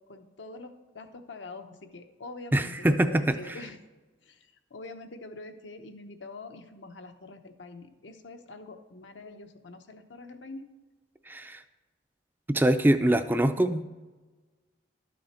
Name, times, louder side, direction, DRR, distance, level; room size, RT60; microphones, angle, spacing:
voice 1, 0.1-3.8 4.2-10.7, left 3 dB, 80° left, 6 dB, 0.8 m, -45 dB
voice 2, 2.5-3.6 11.3-11.6 12.5-13.8, right 1 dB, 10° right, 9 dB, 0.4 m, -24 dB
12.0 x 6.4 x 4.3 m, 1.2 s
head